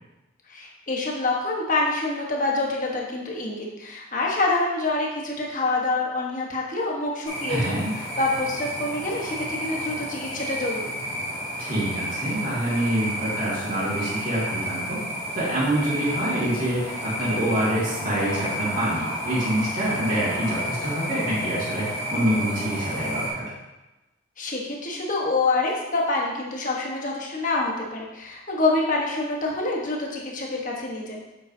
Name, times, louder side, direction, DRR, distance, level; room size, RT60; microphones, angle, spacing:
voice 1, 0.5-7.8 8.2-10.9 24.4-31.3, left 2 dB, 40° left, -2 dB, 1.2 m, -26 dB
sound 1, 7.2-23.3, equal, 25° left, 2.1 m, -31 dB
voice 2, 7.5-7.9 11.6-15.0 15.3-23.5, right 1 dB, 40° right, -7 dB, 2.1 m, -26 dB
7.7 x 7.1 x 2.7 m, 1.0 s
head